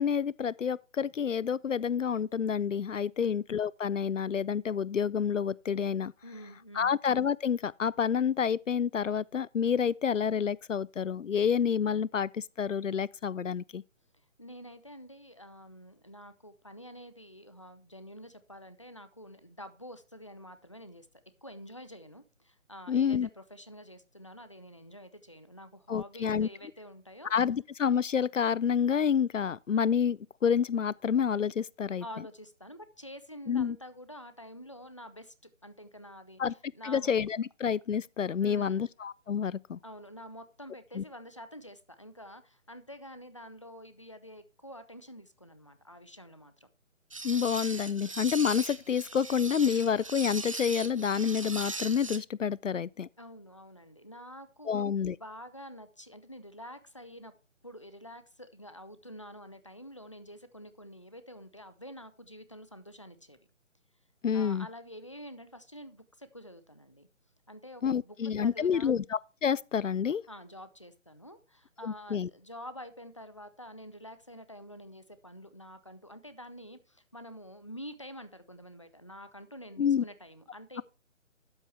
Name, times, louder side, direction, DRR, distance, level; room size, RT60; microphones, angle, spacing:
voice 1, 0.0-6.1 6.7-13.8 22.9-23.3 25.9-26.5 27.3-32.0 33.5-33.8 36.4-36.5 36.8-39.8 41.0-41.1 47.2-53.1 54.7-55.2 64.2-64.7 67.8-70.2 71.8-72.3 79.8-80.0, left 7 dB, 70° left, 0.5 m, -28 dB
voice 2, 6.2-6.9 14.4-21.1 21.4-27.3 32.0-35.3 35.6-37.1 38.4-38.9 39.8-46.5 53.2-57.3 57.6-63.4 64.3-67.1 67.5-68.9 70.3-80.8, equal, 25° left, 0.5 m, -48 dB
sound 1, 47.1-52.2, right 3 dB, 25° right, 0.8 m, -39 dB
12.5 x 8.1 x 3.3 m
figure-of-eight pair, 150°, 39 cm